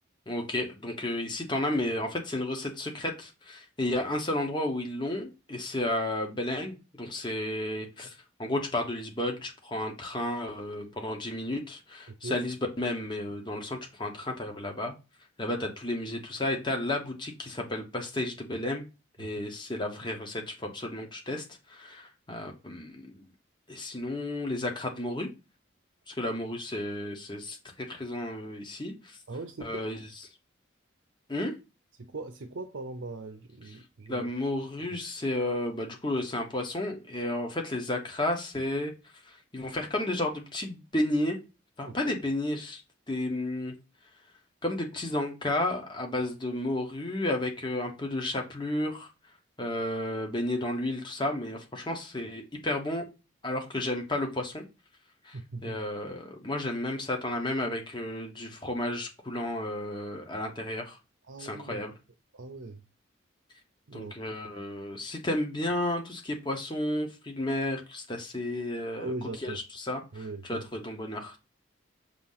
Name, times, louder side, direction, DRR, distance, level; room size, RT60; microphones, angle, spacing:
voice 1, 0.3-14.9 15.4-18.9 19.2-23.2 23.7-25.3 26.1-29.2 29.6-30.1 31.3-31.6 34.1-38.9 39.2-41.4 41.8-42.8 43.1-43.7 44.6-49.1 49.6-53.1 53.4-54.6 55.2-55.4 55.6-61.0 61.4-61.9 63.9-69.1 69.4-70.0 70.4-71.4, left 1 dB, 25° left, 1.2 m, -32 dB
voice 2, 12.1-12.4 19.2-19.3 29.3-29.9 32.0-34.3 34.9-35.0 41.8-42.2 55.3-55.8 61.3-61.8 62.3-62.8 63.9-64.1 69.0-69.6 70.1-70.7, right 2 dB, 75° right, 0.7 m, -40 dB
6.9 x 2.9 x 5.6 m
head